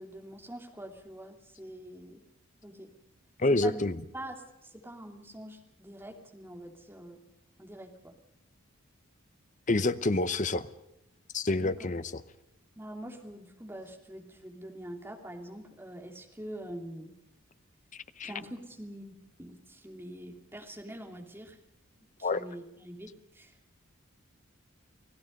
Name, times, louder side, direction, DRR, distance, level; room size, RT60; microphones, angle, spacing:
voice 1, 0.0-2.2 2.6-2.9 3.5-7.2 7.6-8.2 11.6-11.9 12.8-17.1 18.2-19.1 19.4-21.6 22.2-23.8, right 1 dB, 10° right, 2 dB, 2.8 m, -45 dB
voice 2, 3.4-4.0 9.7-10.7 11.3-12.2 18.2-18.3 22.2-22.4, left 2 dB, 35° left, 13 dB, 0.8 m, -27 dB
29.5 x 17.5 x 5.3 m, 0.85 s
head